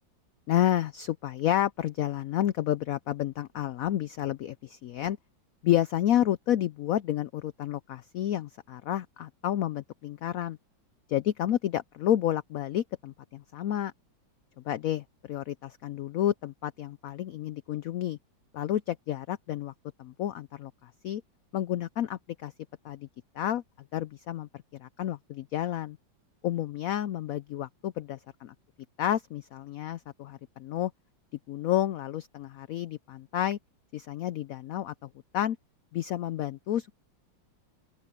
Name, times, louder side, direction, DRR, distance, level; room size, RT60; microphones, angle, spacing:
voice 1, 0.5-5.2 5.6-10.6 11.1-13.9 14.6-18.2 18.5-19.7 20.0-21.2 21.5-22.5 22.8-23.1 23.3-23.6 23.9-26.0 26.4-28.5 29.0-30.9 31.5-33.6 33.9-35.6 35.9-36.9, left 12 dB, 90° left, 0.7 m, -30 dB
open air
omnidirectional pair, 2.0 m